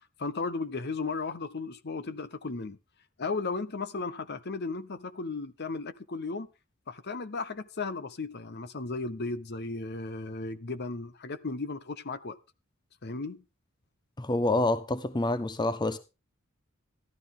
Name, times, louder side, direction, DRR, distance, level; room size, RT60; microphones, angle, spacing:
voice 1, 0.2-2.8 3.2-6.5 6.9-12.4 13.0-13.4, left 3 dB, 50° left, 0.9 m, -35 dB
voice 2, 14.2-16.0, left 2 dB, 20° left, 0.6 m, -27 dB
13.5 x 12.0 x 3.8 m
head